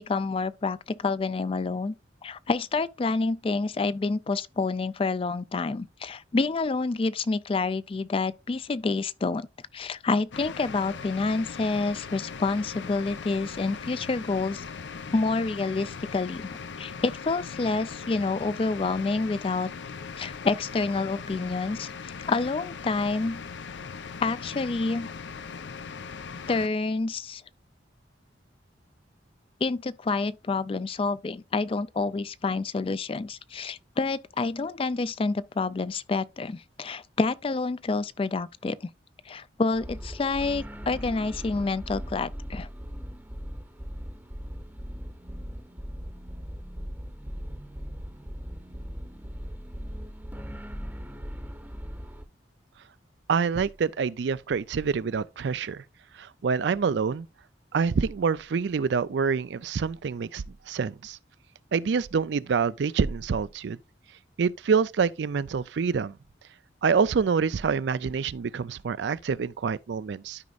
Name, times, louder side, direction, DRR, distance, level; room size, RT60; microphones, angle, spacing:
voice 1, 0.1-1.9 2.2-9.5 9.7-14.6 15.1-19.7 20.2-23.5 24.2-25.1 26.5-27.4 29.6-38.9 39.3-42.7, left 3 dB, 30° left, 0.3 m, -28 dB
sound 1, 10.3-26.7, left 5 dB, 80° left, 0.6 m, -39 dB
sound 2, 39.7-52.2, equal, 10° right, 0.8 m, -39 dB
voice 2, 53.3-55.8 56.2-57.3 57.7-61.2 61.7-63.8 64.4-66.2 66.8-70.4, right 5 dB, 70° right, 0.4 m, -26 dB
12.5 x 5.2 x 2.4 m
head